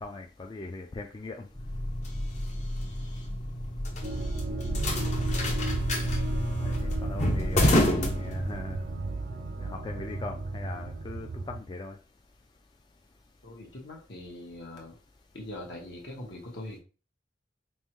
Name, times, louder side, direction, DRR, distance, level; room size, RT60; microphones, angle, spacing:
voice 1, 0.0-1.5 6.6-8.8 9.6-12.0, left 3 dB, 25° left, 3 dB, 0.3 m, -40 dB
sound 1, 1.5-8.9, left 1 dB, 40° left, 0.7 m, -29 dB
sound 2, 4.0-11.6, right 3 dB, 50° right, 0.4 m, -34 dB
voice 2, 13.4-14.9 15.3-16.8, left 1 dB, 65° left, -1 dB, 1.2 m, -42 dB
5.3 x 2.2 x 3.0 m, 0.34 s
head